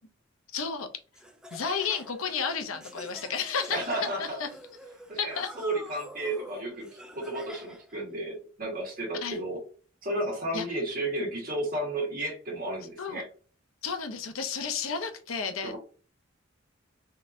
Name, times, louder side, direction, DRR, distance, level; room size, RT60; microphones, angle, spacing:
voice 1, 0.5-0.9 1.5-3.8 4.2-4.5 5.2-5.5 9.2-9.4 10.5-10.6 13.0-13.2 13.8-15.8, left 6 dB, 85° left, 7 dB, 0.6 m, -32 dB
Laughter, 1.1-8.0, equal, 5° right, 0.4 m, -46 dB
voice 2, 3.7-4.4 5.1-9.6 10.0-13.3 15.6-15.8, right 1 dB, 45° right, -1 dB, 1.4 m, -33 dB
3.7 x 2.7 x 2.5 m, 0.39 s
head